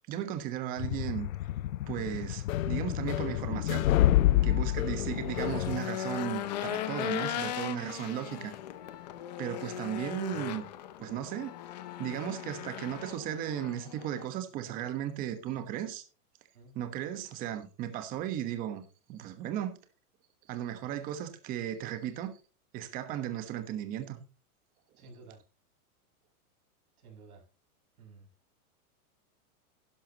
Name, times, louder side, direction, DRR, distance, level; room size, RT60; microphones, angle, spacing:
voice 1, 0.1-1.3 1.9-3.9 4.4-8.5 9.4-10.6 11.0-11.5 12.0-16.0 16.7-19.8 20.5-22.3 22.7-24.2, right 11 dB, 20° right, 1.2 m, -36 dB
sound 1, 0.8-5.8, left 14 dB, 65° left, 0.7 m, -28 dB
Organ, 3.5-13.4 13.7-14.0, left 13 dB, 85° left, 2.1 m, -55 dB
Race car auto racing / Engine, 4.2-14.3, left 12 dB, 30° left, 0.6 m, -38 dB
voice 2, 25.0-25.4 27.0-27.4 28.0-28.3, right 4 dB, 70° right, 6.4 m, -52 dB
11.5 x 11.5 x 2.9 m
supercardioid pair, 170°, 45 cm